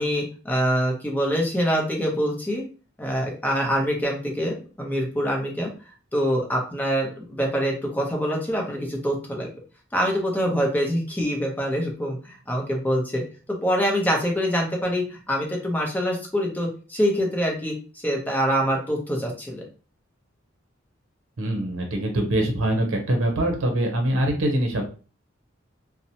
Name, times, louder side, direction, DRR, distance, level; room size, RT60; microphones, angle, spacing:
voice 1, 0.0-2.6 3.0-5.7 6.1-9.5 9.9-13.2 13.6-17.7 18.0-19.6, equal, 10° left, 0 dB, 0.6 m, -25 dB
voice 2, 21.4-24.9, right 1 dB, 80° right, 3 dB, 0.6 m, -23 dB
2.7 x 2.0 x 2.7 m, 0.36 s
head